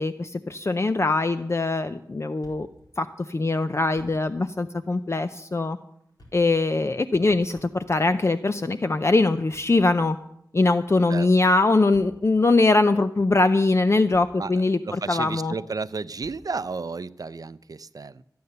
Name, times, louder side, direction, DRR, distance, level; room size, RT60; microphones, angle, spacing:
voice 1, 0.0-2.7 3.0-5.8 6.3-10.2 10.5-15.5, left 3 dB, 40° left, 0.5 m, -22 dB
Thump thud, 2.4-2.9 3.2-3.3 3.8-4.5 4.8-5.0 5.9-6.6 7.5-8.2 9.3-10.3 11.7-12.4 13.1-13.2 13.8-14.6 14.8-15.0 16.2-16.6, equal, 70° left, 4.4 m, -52 dB
voice 2, 14.9-18.2, right 4 dB, 60° right, 0.5 m, -32 dB
14.0 x 9.5 x 6.7 m
wide cardioid pair, 50°, 7 cm